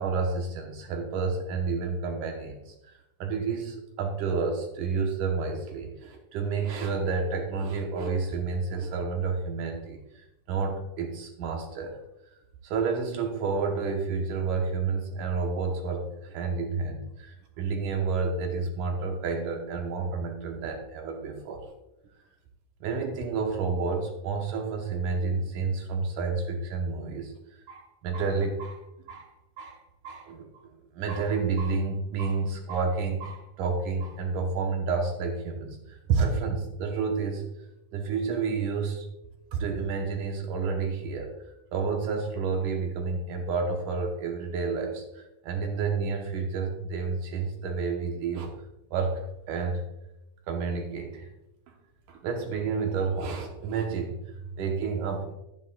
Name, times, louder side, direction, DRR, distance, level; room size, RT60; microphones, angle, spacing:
voice 1, 0.0-12.0 12.6-21.7 22.8-27.3 27.7-28.8 29.1-29.3 29.6-29.8 30.0-37.5 37.9-39.1 39.5-48.5 48.9-49.8 50.5-51.3 52.1-55.3, right 4 dB, 75° right, 2 dB, 2.3 m, -30 dB
11.5 x 9.9 x 2.2 m, 0.88 s
omnidirectional pair, 3.9 m